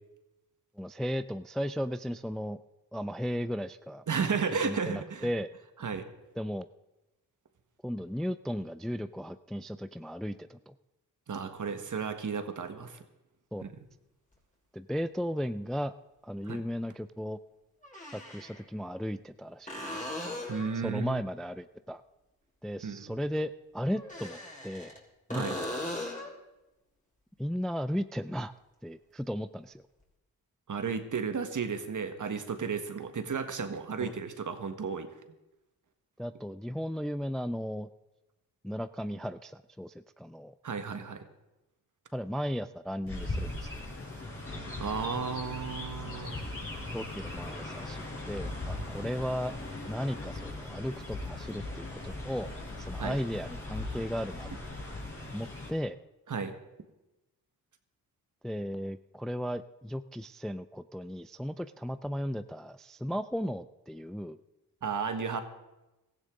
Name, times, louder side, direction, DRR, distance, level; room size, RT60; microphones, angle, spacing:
voice 1, 0.8-2.6 2.9-4.0 4.6-5.5 6.4-6.7 7.8-10.7 13.5-13.7 14.7-15.9 16.2-17.4 18.1-20.0 20.7-22.0 22.6-24.4 24.6-24.9 25.3-25.7 27.4-28.5 28.8-29.8 34.0-34.1 36.2-37.9 38.6-40.5 42.1-43.8 46.9-49.5 49.9-52.5 52.8-54.5 55.3-56.0 58.4-64.4, equal, ahead, 13 dB, 0.4 m, -35 dB
voice 2, 4.1-5.3 5.8-6.0 11.3-13.0 13.6-13.7 16.5-16.6 20.5-21.2 22.8-23.1 25.3-25.6 30.7-35.1 40.6-41.3 44.8-46.4 53.0-53.2 56.3-56.5 64.8-65.4, right 5 dB, 55° right, 8 dB, 1.5 m, -33 dB
sound 1, 14.3-14.4 16.5-16.6 17.8-18.6 19.7-20.8 23.9-25.0 25.3-26.4 30.0-30.1, left 1 dB, 20° left, 3.8 m, -38 dB
Chirp tweet, 43.1-55.7, left 2 dB, 35° left, 4.6 m, -39 dB
16.0 x 14.0 x 3.7 m, 1.0 s
cardioid pair, 55°, 38 cm